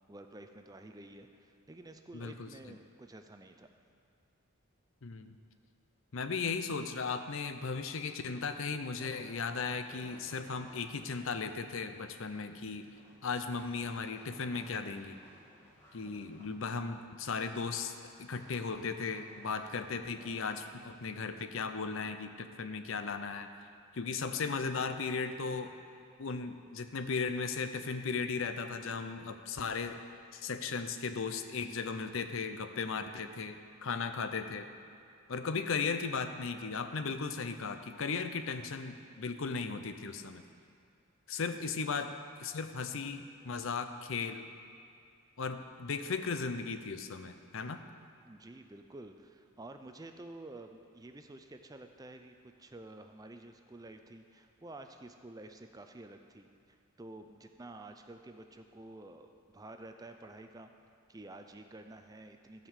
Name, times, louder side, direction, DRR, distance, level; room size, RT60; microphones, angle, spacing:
voice 1, 0.1-3.7 41.6-41.8 48.2-60.7 61.1-62.7, right 2 dB, 15° right, 6 dB, 0.4 m, -50 dB
voice 2, 2.1-2.8 5.0-5.4 6.1-12.9 13.2-15.2 15.9-23.5 23.9-25.7 26.2-30.0 30.3-34.7 35.3-40.4 41.3-42.1 42.4-44.4 45.4-47.8, left 5 dB, 60° left, 9 dB, 0.6 m, -36 dB
sound 1, 9.0-21.0, left 1 dB, 10° left, 1.8 m, -60 dB
14.5 x 5.0 x 7.3 m, 2.4 s
head